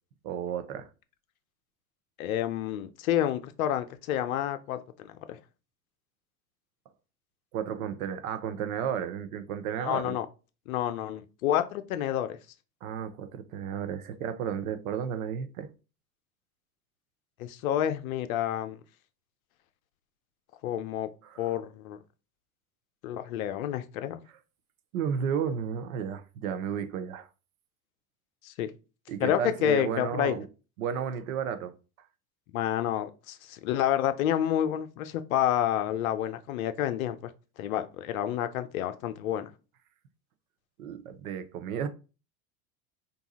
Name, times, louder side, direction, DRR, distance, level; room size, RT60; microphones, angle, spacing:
voice 1, 0.2-0.9 7.5-10.2 12.8-15.7 21.2-21.5 24.9-27.3 29.1-30.5 30.8-31.7 40.8-41.9, right 8 dB, 70° right, 0.6 m, -33 dB
voice 2, 2.2-5.4 9.8-10.3 10.7-12.4 17.4-18.8 20.6-21.1 21.4-22.0 23.0-24.2 28.4-28.7 29.2-30.4 32.5-37.3 37.6-39.5, left 11 dB, 70° left, 0.6 m, -29 dB
2.7 x 2.3 x 4.0 m
hypercardioid pair, 85°, 44 cm